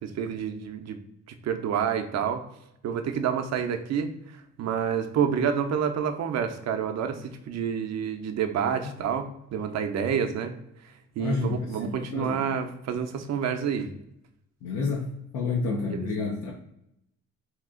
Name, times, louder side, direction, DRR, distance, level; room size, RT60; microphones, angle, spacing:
voice 1, 0.0-1.0 1.4-2.5 2.8-10.6 10.8-13.9 15.9-16.1, right 7 dB, 60° right, 6 dB, 0.6 m, -28 dB
voice 2, 11.2-12.5 14.6-16.5, left 4 dB, 90° left, -2 dB, 0.7 m, -30 dB
2.8 x 2.4 x 3.6 m, 0.81 s
cardioid pair, 90°, 30 cm